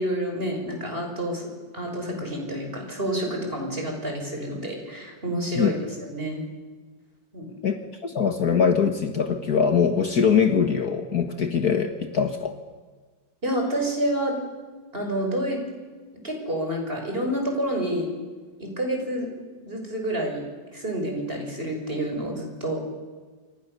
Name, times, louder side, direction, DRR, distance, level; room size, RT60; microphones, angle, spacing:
voice 1, 0.0-1.5 1.7-5.8 6.1-6.4 7.3-7.5 13.4-14.4 14.9-15.6 16.1-18.1 18.6-19.3 19.6-22.8, right 1 dB, 30° right, 2 dB, 6.2 m, -28 dB
voice 2, 7.6-12.6, left 6 dB, 55° left, 7 dB, 2.0 m, -22 dB
28.5 x 25.5 x 6.9 m, 1.4 s
omnidirectional pair, 2.1 m